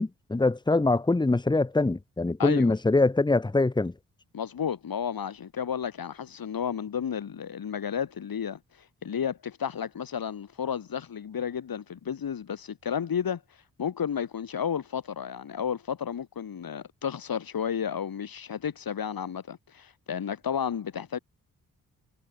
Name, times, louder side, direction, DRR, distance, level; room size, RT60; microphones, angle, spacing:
voice 1, 0.0-3.9, left 2 dB, 10° left, 0.8 m, -24 dB
voice 2, 2.4-2.7 4.3-8.6 9.0-13.4 13.8-21.2, left 8 dB, 65° left, 3.3 m, -32 dB
supercardioid pair, 40°, 38 cm